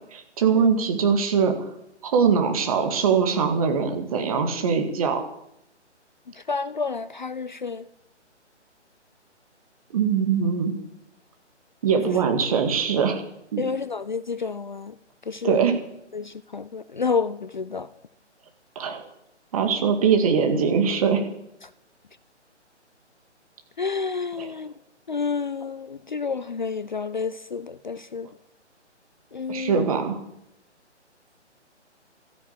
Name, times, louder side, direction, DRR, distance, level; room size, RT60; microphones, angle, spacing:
voice 1, 0.1-1.7 2.0-5.2 9.9-10.7 11.8-13.2 13.5-13.7 15.4-15.8 18.8-19.1 19.5-21.3 24.4-24.5 29.5-30.2, right 6 dB, 30° right, 2.0 m, -22 dB
voice 2, 6.4-7.9 12.0-12.1 13.6-14.9 15.3-15.6 16.1-17.9 23.8-24.7 25.1-28.3 29.3-29.8, left 5 dB, 40° left, 0.5 m, -29 dB
13.5 x 10.5 x 8.4 m
figure-of-eight pair, 140°, 35 cm